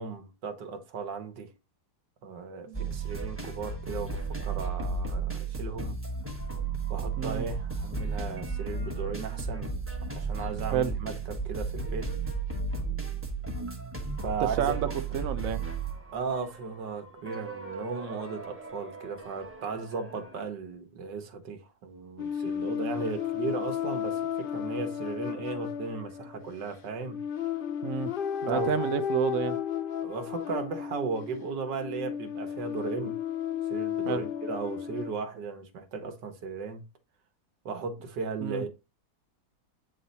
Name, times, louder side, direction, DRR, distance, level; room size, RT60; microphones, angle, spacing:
voice 1, 0.0-1.5 2.2-6.0 6.9-9.7 10.2-12.1 14.2-14.7 16.1-27.2 28.5-28.9 30.0-33.2 33.7-36.8 37.7-38.7, right 5 dB, 80° right, 1.8 m, -36 dB
sound 1, 2.7-20.4, right 4 dB, 10° right, 1.0 m, -34 dB
voice 2, 14.4-14.9 15.1-15.6 27.8-28.1 28.4-29.6 34.1-34.2 38.4-38.6, right 8 dB, 65° right, 0.9 m, -29 dB
sound 2, 22.2-35.1, left 9 dB, 85° left, 0.4 m, -33 dB
8.8 x 3.3 x 4.0 m
omnidirectional pair, 1.8 m